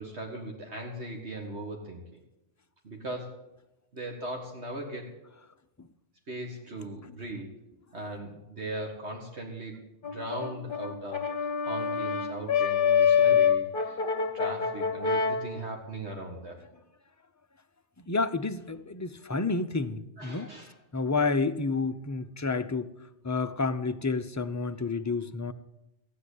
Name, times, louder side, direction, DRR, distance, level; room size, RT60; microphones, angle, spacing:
voice 1, 0.0-2.0 2.8-3.3 3.9-5.1 6.3-7.5 7.9-14.0 14.3-16.6 20.2-20.7, right 1 dB, 65° right, 1 dB, 2.1 m, -39 dB
Brass instrument, 10.0-15.5, left 7 dB, 50° left, 1.1 m, -26 dB
voice 2, 18.0-20.5 20.9-22.9 23.2-25.5, left 4 dB, 20° left, 8 dB, 0.5 m, -30 dB
15.0 x 9.3 x 8.4 m, 0.92 s
omnidirectional pair, 1.2 m